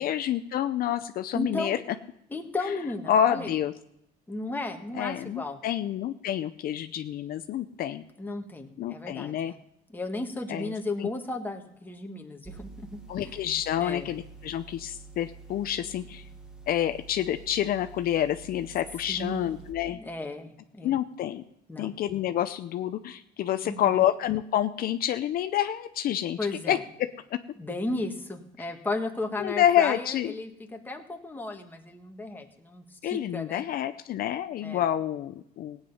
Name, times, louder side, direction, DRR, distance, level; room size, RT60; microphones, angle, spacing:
voice 1, 0.0-1.8 3.1-3.7 5.0-8.0 8.8-9.5 10.5-10.7 13.1-16.3 16.7-20.0 20.8-21.4 21.8-26.4 26.7-27.4 28.6-28.7 29.4-30.3 33.0-35.8, left 11 dB, 60° left, 9 dB, 0.6 m, -28 dB
voice 2, 1.3-1.8 2.3-3.5 4.3-5.6 8.2-9.6 9.9-13.3 13.8-14.1 19.1-19.6 19.9-20.9 21.7-21.9 23.6-23.8 26.4-26.8 27.6-33.7 34.6-34.8, left 2 dB, 10° left, 3 dB, 1.6 m, -34 dB
sound 1, 12.5-19.7, right 4 dB, 5° right, 1.4 m, -48 dB
16.5 x 9.0 x 5.5 m, 0.79 s
cardioid pair, 110°, 17 cm